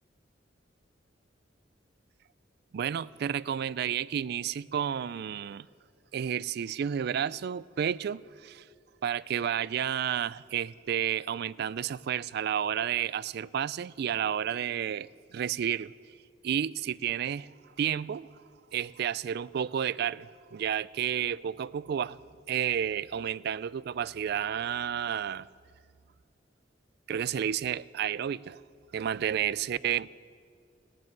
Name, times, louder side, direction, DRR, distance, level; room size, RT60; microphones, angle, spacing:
voice 1, 2.7-5.7 6.1-8.6 9.0-15.9 16.4-17.5 17.8-18.3 18.7-22.2 22.5-25.5 27.1-28.6 28.9-30.1, right 9 dB, 60° right, 0.3 m, -31 dB
17.5 x 7.5 x 9.4 m
head